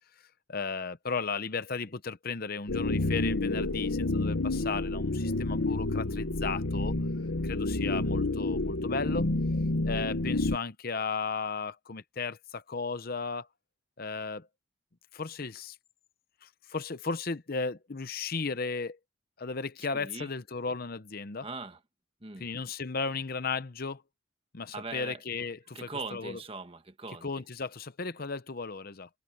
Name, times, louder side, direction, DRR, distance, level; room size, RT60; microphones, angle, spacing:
voice 1, 0.5-7.0 7.4-9.3 9.8-13.5 14.0-14.5 15.1-15.8 16.4-19.0 19.4-21.5 22.4-24.0 24.5-26.4 27.2-29.1, left 4 dB, 45° left, 0.8 m, -35 dB
sound 1, 2.7-10.6, left 2 dB, 75° left, 1.2 m, -29 dB
voice 2, 19.9-20.3 21.4-21.8 22.2-22.5 24.7-25.2 25.7-27.3, right 3 dB, 25° right, 1.4 m, -40 dB
head